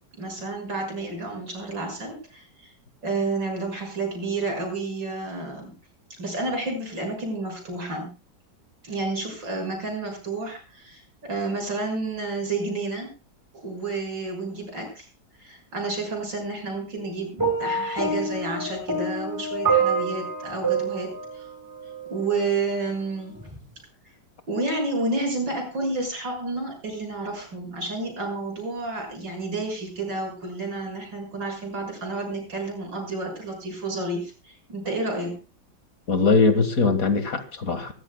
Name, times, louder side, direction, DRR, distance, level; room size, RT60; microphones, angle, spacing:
voice 1, 0.2-2.4 3.0-5.7 6.2-8.1 8.8-13.1 13.6-15.1 15.4-21.5 22.1-23.4 24.5-35.4, right 3 dB, 85° right, 3 dB, 7.1 m, -30 dB
sound 1, 17.4-22.5 23.4-23.6, right 4 dB, 10° right, 4.8 m, -27 dB
voice 2, 36.1-37.9, left 4 dB, 50° left, 9 dB, 2.1 m, -21 dB
25.0 x 15.0 x 2.3 m, 0.32 s
omnidirectional pair, 1.9 m